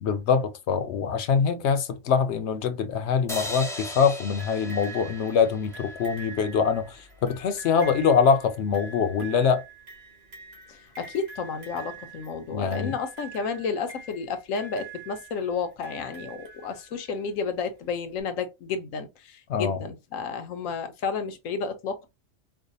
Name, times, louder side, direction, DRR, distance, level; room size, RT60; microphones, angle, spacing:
voice 1, 0.0-9.6 12.5-13.0 19.5-19.8, left 6 dB, 65° left, 0.8 m, -24 dB
sound 1, 3.3-6.6, left 1 dB, 5° left, 0.4 m, -38 dB
sound 2, 4.4-17.2 18.2-18.3, right 3 dB, 55° right, 1.9 m, -45 dB
voice 2, 11.0-22.1, left 5 dB, 85° left, 1.1 m, -31 dB
4.7 x 2.1 x 2.6 m
omnidirectional pair, 1.3 m